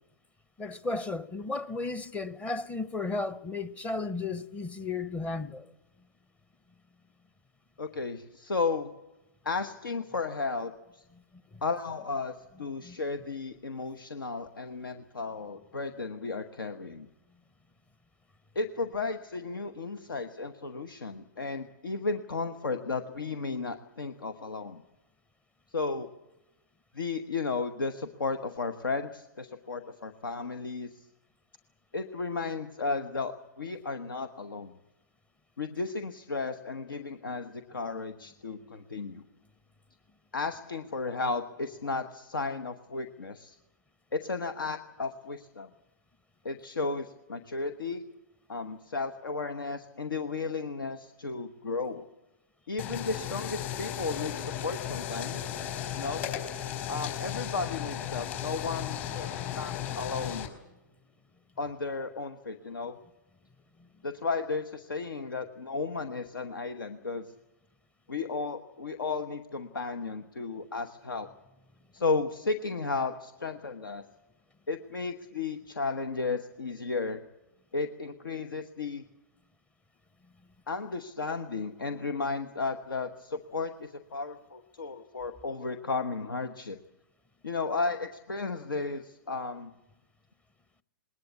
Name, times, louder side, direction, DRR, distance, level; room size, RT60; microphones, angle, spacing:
voice 1, 0.6-5.7 12.8-13.0 59.3-59.8, left 3 dB, 10° left, 0.7 m, -34 dB
voice 2, 7.8-8.9 9.4-11.0 11.6-17.1 18.5-24.8 25.7-26.1 26.9-31.1 31.9-34.7 35.6-39.2 40.3-43.6 44.1-45.7 46.4-48.0 48.5-52.0 52.7-55.6 56.0-56.3 56.9-60.5 61.6-63.0 64.0-67.3 68.1-71.3 71.9-74.0 74.7-77.2 77.7-79.0 80.7-86.8 87.4-89.7, left 4 dB, 85° left, 1.2 m, -34 dB
sound 1, 52.8-60.5, left 10 dB, 40° left, 4.5 m, -35 dB
20.5 x 19.0 x 8.5 m
hypercardioid pair, 130°, 11 cm